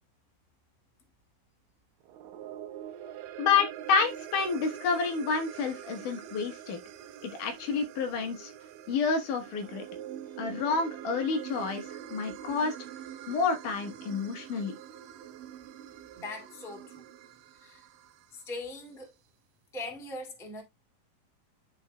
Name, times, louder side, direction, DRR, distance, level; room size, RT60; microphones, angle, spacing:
sound 1, 2.0-18.5, right 10 dB, 80° right, 2.2 m, -44 dB
voice 1, 3.4-6.8 7.2-8.5 8.9-9.8 10.4-11.8 12.1-12.7 13.3-14.8, left 5 dB, 70° left, 2.6 m, -29 dB
voice 2, 16.1-17.1 17.5-17.9 18.3-19.1 19.7-20.6, left 2 dB, ahead, 1.2 m, -41 dB
12.0 x 4.9 x 2.2 m
omnidirectional pair, 4.0 m